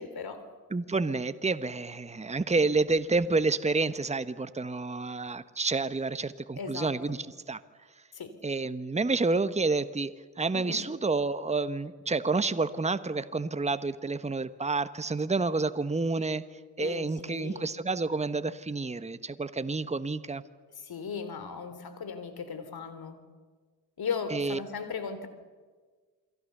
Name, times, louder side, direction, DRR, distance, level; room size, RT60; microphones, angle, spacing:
voice 1, 0.0-0.5 6.6-7.2 8.1-8.4 10.5-10.8 16.8-17.7 20.8-23.2 24.0-25.3, left 5 dB, 50° left, 11 dB, 3.6 m, -37 dB
voice 2, 0.7-7.2 7.5-7.6 8.4-10.1 10.4-16.4 16.8-20.4 24.3-24.6, right 3 dB, 15° right, 12 dB, 1.3 m, -29 dB
28.5 x 23.0 x 6.8 m, 1.5 s
hypercardioid pair, 45°, 47 cm